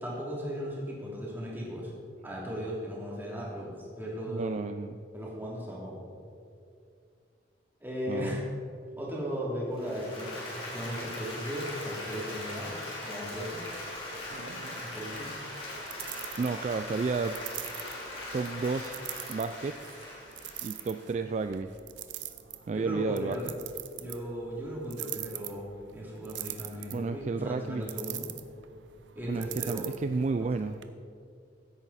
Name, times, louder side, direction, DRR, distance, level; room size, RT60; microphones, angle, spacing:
voice 1, 0.0-1.9 2.2-4.7 5.1-6.0 7.8-8.4 9.0-12.7 13.0-13.6 14.8-15.3 22.7-23.5 24.0-25.7 25.9-28.3 29.1-29.9 30.4-30.5, equal, 10° right, -5 dB, 2.9 m, -37 dB
voice 2, 4.3-5.0 8.1-8.4 16.4-17.4 18.3-19.0 19.3-19.8 20.6-21.7 22.7-23.6 26.9-27.9 29.3-30.8, right 4 dB, 40° right, 9 dB, 0.3 m, -32 dB
Applause, 9.7-21.4, left 1 dB, 30° left, 3.3 m, -40 dB
sound 1, 13.3-30.9, right 13 dB, 90° right, 0.7 m, -44 dB
16.0 x 8.8 x 4.2 m, 2.4 s
head